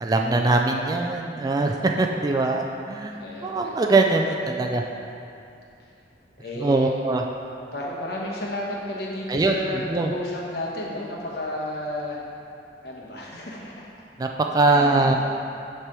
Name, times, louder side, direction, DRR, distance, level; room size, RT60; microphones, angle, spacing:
voice 1, 0.0-4.8 6.6-7.2 9.3-10.1 14.2-15.2, right 2 dB, 20° right, 2 dB, 0.3 m, -22 dB
voice 2, 3.2-3.7 6.4-6.9 7.7-12.2 12.8-13.9 14.7-15.1, left 1 dB, 65° left, -3 dB, 1.2 m, -32 dB
7.2 x 3.4 x 6.1 m, 2.6 s
head